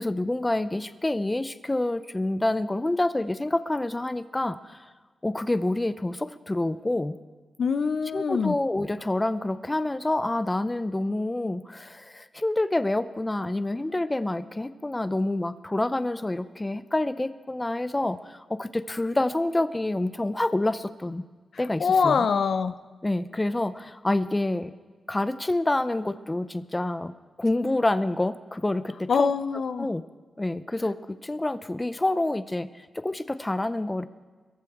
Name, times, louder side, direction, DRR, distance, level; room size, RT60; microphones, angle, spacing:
voice 1, 0.0-4.8 5.2-7.2 8.1-21.2 21.6-22.2 23.0-24.7 25.1-27.1 27.4-29.3 29.8-30.0 30.4-34.1, left 2 dB, 20° left, 13 dB, 0.6 m, -27 dB
voice 2, 7.6-8.6 21.8-22.8 29.1-29.9, left 5 dB, 65° left, 12 dB, 0.5 m, -24 dB
22.0 x 15.0 x 3.7 m, 1.4 s
cardioid pair, 70°, 0 cm